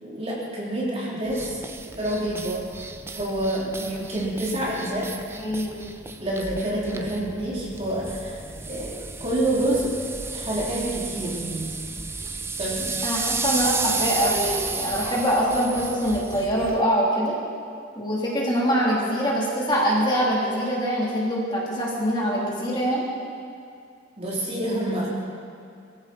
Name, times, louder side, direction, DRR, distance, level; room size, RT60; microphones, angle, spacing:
voice 1, 0.0-1.6 1.9-2.6 3.1-5.1 6.2-8.4 8.7-11.8 12.6-12.9 24.2-25.2, right 1 dB, 30° right, -5 dB, 3.1 m, -27 dB
sound 1, 1.3-16.8, right 4 dB, 15° right, 0.5 m, -33 dB
voice 2, 5.3-5.8 13.0-17.3 17.9-23.0, equal, 25° left, -5 dB, 3.2 m, -24 dB
23.0 x 14.5 x 4.2 m, 2.4 s
head